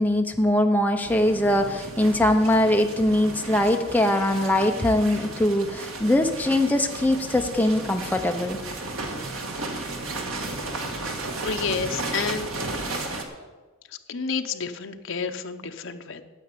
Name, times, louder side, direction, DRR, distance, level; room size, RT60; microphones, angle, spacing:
voice 1, 0.0-8.6, left 1 dB, 10° left, 4 dB, 0.8 m, -22 dB
sound 1, 1.1-13.2, right 2 dB, 80° right, 1.7 m, -34 dB
voice 2, 11.4-12.5 14.1-16.2, left 5 dB, 60° left, 7 dB, 0.8 m, -30 dB
9.2 x 8.5 x 8.5 m, 1.3 s
head